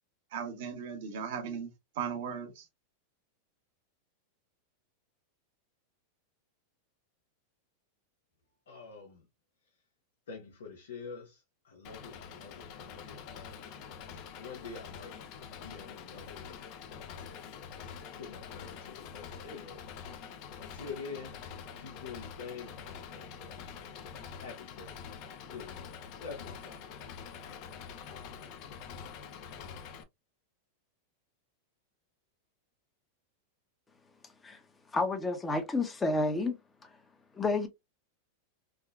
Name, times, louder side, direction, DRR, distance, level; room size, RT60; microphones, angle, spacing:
voice 1, 0.3-1.7 2.0-2.6, right 7 dB, 70° right, 1.1 m, -37 dB
voice 2, 8.7-9.3 10.3-13.8 14.4-15.2 15.6-16.7 17.1-17.3 18.1-21.4 21.7-25.0 25.5-25.8 26.2-27.3, left 5 dB, 85° left, 0.9 m, -47 dB
Engine, 11.8-30.0, left 7 dB, 50° left, 0.6 m, -46 dB
voice 3, 34.9-36.5 36.8-37.0 37.3-37.7, left 3 dB, 15° left, 0.8 m, -30 dB
3.6 x 2.2 x 2.3 m
hypercardioid pair, 115°, 0 cm